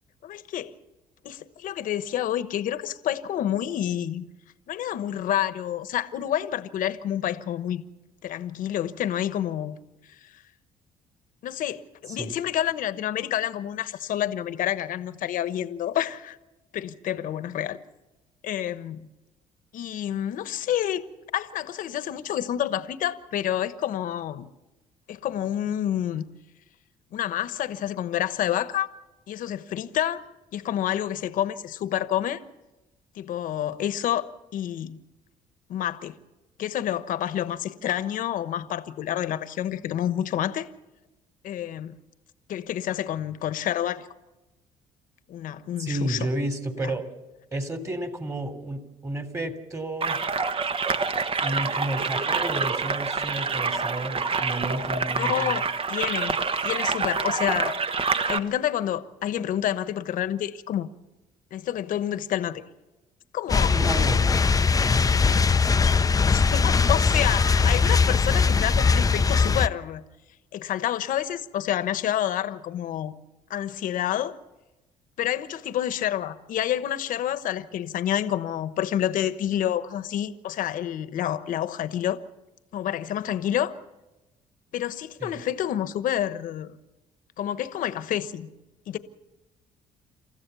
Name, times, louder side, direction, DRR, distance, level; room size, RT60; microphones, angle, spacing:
voice 1, 0.2-0.7 1.2-4.2 4.7-7.8 8.2-9.8 10.1-10.4 11.4-16.4 16.7-17.8 18.4-19.1 19.7-21.0 21.3-24.5 25.1-26.2 27.1-28.9 29.3-30.2 30.5-32.4 33.1-35.0 35.7-36.1 36.6-40.7 41.4-42.0 42.5-44.1 45.3-46.3 46.8-46.9 55.1-56.4 56.6-57.8 58.3-60.9 61.5-62.7 63.3-63.8 66.3-70.0 70.5-73.1 73.5-74.3 75.2-82.2 82.7-83.7 84.7-86.8 87.4-88.5 88.9-89.0, left 11 dB, 70° left, 1.2 m, -28 dB
voice 2, 45.8-47.1 47.5-50.2 51.4-55.6 63.6-64.4 85.2-85.4, right 1 dB, 20° right, 3.3 m, -31 dB
sound 1, 50.0-58.4, right 4 dB, 40° right, 1.4 m, -27 dB
sound 2, 63.5-69.7, left 5 dB, 25° left, 0.6 m, -20 dB
28.0 x 14.5 x 7.1 m
supercardioid pair, 80°, 14 cm